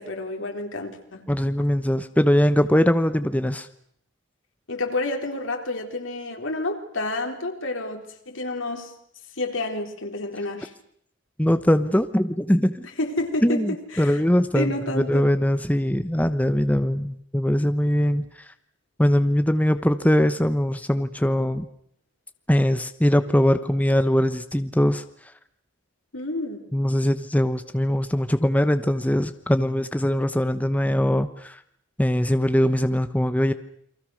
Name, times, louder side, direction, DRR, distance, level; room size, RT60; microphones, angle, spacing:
voice 1, 0.0-1.3 4.7-8.9 9.4-10.7 13.0-14.2 14.5-15.3 26.1-26.7, left 2 dB, 85° left, 4 dB, 4.1 m, -29 dB
voice 2, 1.3-3.7 11.4-12.9 13.4-18.2 19.0-21.7 22.5-25.0 26.7-31.6 32.0-33.5, equal, 10° left, 10 dB, 1.0 m, -21 dB
29.0 x 24.0 x 6.5 m, 0.68 s
head